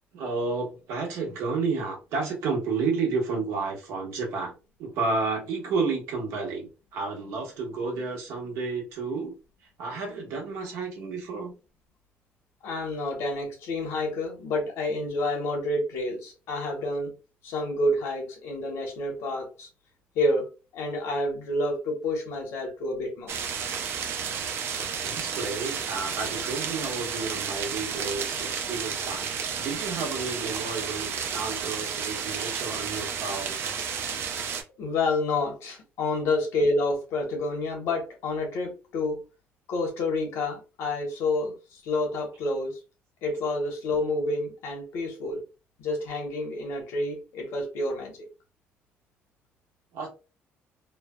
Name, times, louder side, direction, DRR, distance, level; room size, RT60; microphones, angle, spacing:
voice 1, 0.1-9.3 9.8-11.5 25.0-29.3 29.6-33.7 49.9-50.1, right 4 dB, 85° right, 1.0 m, -31 dB
voice 2, 12.6-17.1 17.4-19.7 20.1-23.4 34.8-39.2 39.7-42.8 43.2-45.4 45.8-48.1, left 2 dB, 80° left, 1.0 m, -29 dB
sound 1, 23.3-34.6, right 7 dB, 60° right, 0.5 m, -32 dB
3.2 x 2.0 x 2.2 m
cardioid pair, 130°, 5 cm